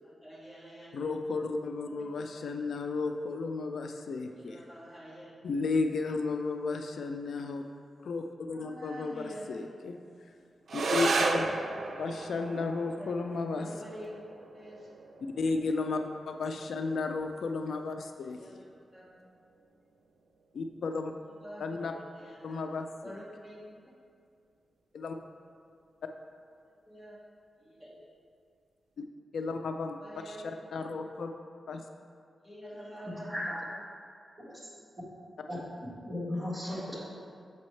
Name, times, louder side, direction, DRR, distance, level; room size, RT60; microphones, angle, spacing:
voice 1, 0.0-1.0 1.8-2.2 4.4-5.3 8.6-9.6 13.0-13.1 13.5-14.2 14.5-14.9 16.5-16.6 18.3-18.6 18.9-19.1 21.4-22.6 23.0-23.7 26.8-27.2 27.6-28.0 30.0-31.0 32.4-33.4 33.7-33.8 36.9-37.1, equal, 5° left, -7 dB, 1.4 m, -47 dB
voice 2, 0.9-4.6 5.4-7.6 8.0-9.2 9.5-10.0 10.7-11.5 12.0-13.7 15.4-18.6 20.5-21.1 21.6-21.9 22.4-23.2 24.9-25.2 29.3-30.0 30.3-31.3 31.7-31.8, left 3 dB, 75° left, 5 dB, 0.3 m, -33 dB
sound 1, 10.7-19.7, right 3 dB, 65° right, 0.4 m, -35 dB
voice 3, 33.3-33.6 34.5-34.6 35.5-35.6 36.0-37.1, left 1 dB, 20° right, -7 dB, 1.5 m, -35 dB
6.9 x 5.2 x 3.2 m, 2.3 s
wide cardioid pair, 145°, 0 cm